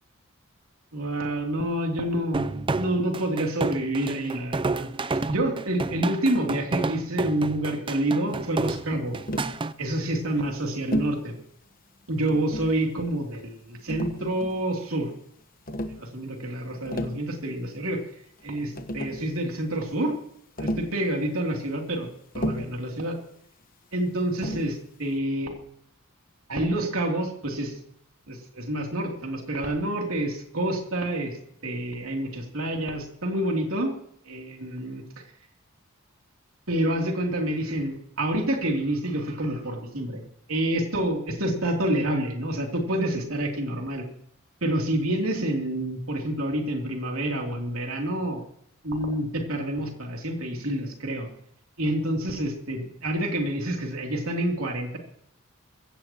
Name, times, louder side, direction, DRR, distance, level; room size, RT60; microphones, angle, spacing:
voice 1, 0.9-9.2 9.8-11.3 12.1-15.1 15.9-18.0 18.4-20.1 20.6-22.1 22.3-23.2 23.9-25.5 26.5-27.7 28.3-31.3 31.6-33.9 34.3-35.2 36.7-40.2 40.5-44.0 44.6-48.4 48.8-51.3 51.8-55.0, right 1 dB, 80° right, 1 dB, 3.0 m, -28 dB
sound 1, 2.3-9.7, right 3 dB, 25° right, 0.5 m, -29 dB
Tap, 9.3-9.6 10.9-11.2 12.3-12.8 13.9-14.7 15.7-16.0 16.7-17.2 18.4-18.5 18.8-19.3 20.6-21.0 22.4-22.8 24.4-24.8, equal, 40° left, 1.1 m, -32 dB
22.5 x 16.5 x 3.0 m, 0.69 s
head